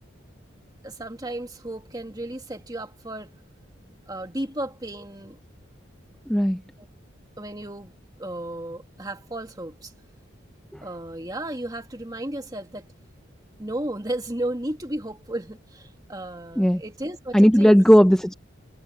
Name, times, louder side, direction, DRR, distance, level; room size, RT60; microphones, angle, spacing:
voice 1, 0.8-3.3 4.1-5.4 6.8-6.9 7.4-7.9 8.2-9.9 10.8-12.8 13.6-17.8, right 1 dB, 20° right, 2.0 m, -34 dB
voice 2, 6.3-6.6 16.6-16.8 17.3-18.3, equal, 5° left, 0.6 m, -16 dB
head